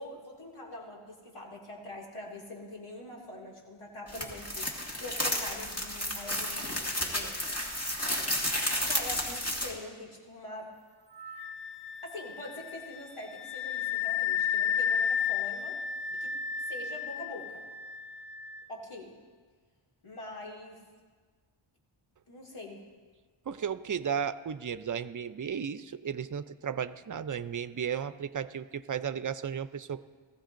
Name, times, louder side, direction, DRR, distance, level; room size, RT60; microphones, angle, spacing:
voice 1, 0.0-4.7 5.0-7.3 8.9-10.7 12.0-15.8 16.1-16.3 16.6-17.6 18.7-19.1 20.0-20.8 22.3-22.8, left 1 dB, 85° left, -2 dB, 2.5 m, -44 dB
sound 1, 4.1-9.7, left 1 dB, 30° left, 2.0 m, -32 dB
Wind instrument woodwind instrument, 11.2-18.6, left 8 dB, 15° left, 1.1 m, -33 dB
voice 2, 23.5-30.0, right 7 dB, 40° right, 13 dB, 0.5 m, -34 dB
19.0 x 14.5 x 2.6 m, 1.5 s
wide cardioid pair, 55°, 50 cm